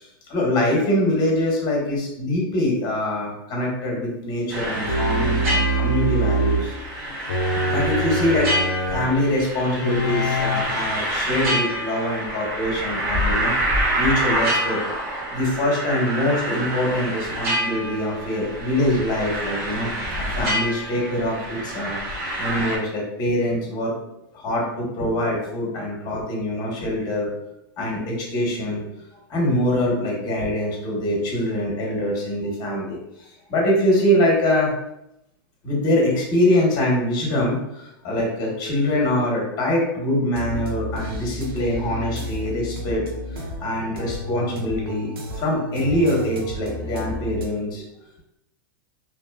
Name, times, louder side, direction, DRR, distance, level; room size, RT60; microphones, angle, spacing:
voice 1, 0.0-6.7 7.7-8.5 8.9-13.5 14.0-14.8 15.3-22.0 22.4-23.9 24.3-27.3 27.8-29.0 29.3-34.7 35.6-43.0 43.3-45.1 45.3-47.8, left 1 dB, 35° left, -2 dB, 1.0 m, -24 dB
sound 1, 4.5-22.8, equal, 45° right, 1.1 m, -27 dB
sound 2, 4.9-6.7 7.3-9.1 9.8-10.6, right 1 dB, 85° left, 0.4 m, -23 dB
sound 3, 40.3-47.5, left 1 dB, 85° right, 0.6 m, -32 dB
2.6 x 2.1 x 2.2 m, 0.83 s
hypercardioid pair, 125°, 12 cm